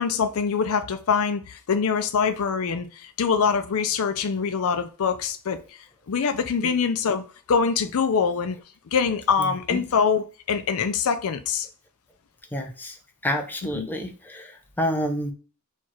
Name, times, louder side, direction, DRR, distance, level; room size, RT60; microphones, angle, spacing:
voice 1, 0.0-7.2 7.5-8.6 8.9-11.7 13.6-13.9, left 6 dB, 70° left, 0.5 m, -24 dB
voice 2, 12.5-12.9 13.2-14.5 14.8-15.3, equal, 10° left, 0.7 m, -28 dB
4.5 x 2.4 x 4.5 m
head